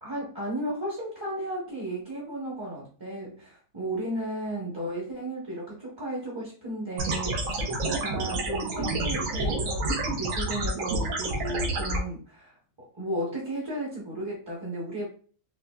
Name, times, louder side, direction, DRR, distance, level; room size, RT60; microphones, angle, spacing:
voice 1, 0.0-12.5 12.9-15.1, right 1 dB, 25° right, -4 dB, 0.7 m, -34 dB
sound 1, 7.0-12.0, right 2 dB, 75° right, 1.1 m, -29 dB
4.0 x 2.5 x 2.2 m, 0.42 s
omnidirectional pair, 1.4 m